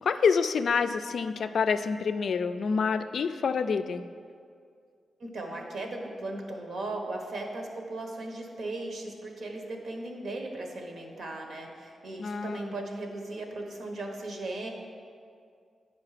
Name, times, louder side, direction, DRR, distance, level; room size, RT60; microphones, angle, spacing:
voice 1, 0.0-4.0 12.2-12.7, left 5 dB, 65° left, 10 dB, 0.3 m, -27 dB
voice 2, 5.2-14.7, right 2 dB, 65° right, 2 dB, 1.2 m, -37 dB
9.5 x 5.2 x 4.9 m, 2.3 s
wide cardioid pair, 120°, 0 cm